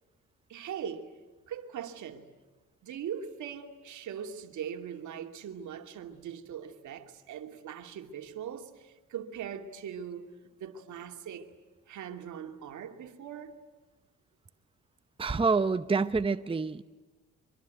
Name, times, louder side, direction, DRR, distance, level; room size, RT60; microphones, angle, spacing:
voice 1, 0.5-1.1 1.5-2.3 2.8-10.3 10.6-11.5 11.9-13.6, right 8 dB, 75° right, 2.6 m, -40 dB
voice 2, 15.2-16.8, right 4 dB, 20° right, 0.9 m, -27 dB
25.0 x 24.0 x 9.3 m
cardioid pair, 90°, 30 cm